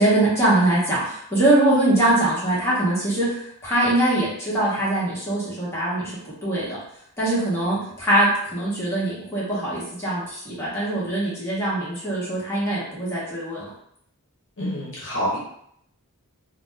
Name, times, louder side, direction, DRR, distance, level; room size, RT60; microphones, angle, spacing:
voice 1, 0.0-6.8 7.2-13.7, right 1 dB, 10° left, -8 dB, 1.1 m, -22 dB
voice 2, 14.6-15.4, equal, 60° left, -6 dB, 0.8 m, -27 dB
2.6 x 2.1 x 3.3 m, 0.71 s
head